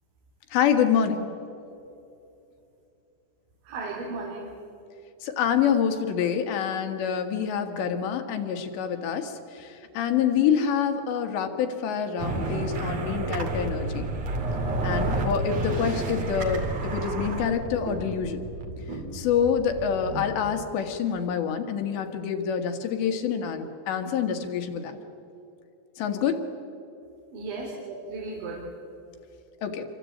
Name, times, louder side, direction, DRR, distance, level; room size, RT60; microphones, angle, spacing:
voice 1, 0.5-1.3 5.2-14.1 14.8-18.4 19.1-25.0 26.0-26.4 29.6-29.9, left 7 dB, 70° left, 6 dB, 3.8 m, -26 dB
voice 2, 3.7-4.5 27.3-28.6, right 3 dB, 75° right, -2 dB, 5.6 m, -35 dB
sound 1, 12.2-20.6, right 2 dB, 45° right, 2.8 m, -30 dB
27.5 x 24.0 x 8.6 m, 2.8 s
omnidirectional pair, 5.4 m